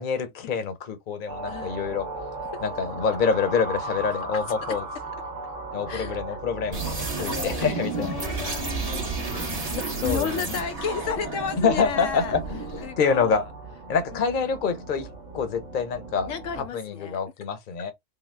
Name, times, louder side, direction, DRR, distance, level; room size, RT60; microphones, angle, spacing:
voice 1, 0.0-2.1 2.6-4.8 5.7-8.1 10.0-10.3 11.6-13.4 13.9-16.3 16.7-17.9, left 5 dB, 45° left, 0.9 m, -26 dB
sound 1, 1.3-16.7, right 2 dB, 70° right, 1.1 m, -38 dB
voice 2, 1.5-1.8 2.5-2.6 3.8-3.9 4.3-4.8 5.9-6.4 7.2-7.7 8.0-12.4 12.8-13.5 14.1-14.5 16.3-17.2, left 7 dB, 75° left, 0.9 m, -33 dB
sound 2, 6.7-12.9, right 3 dB, 30° right, 1.0 m, -31 dB
3.9 x 2.0 x 3.2 m
omnidirectional pair, 1.4 m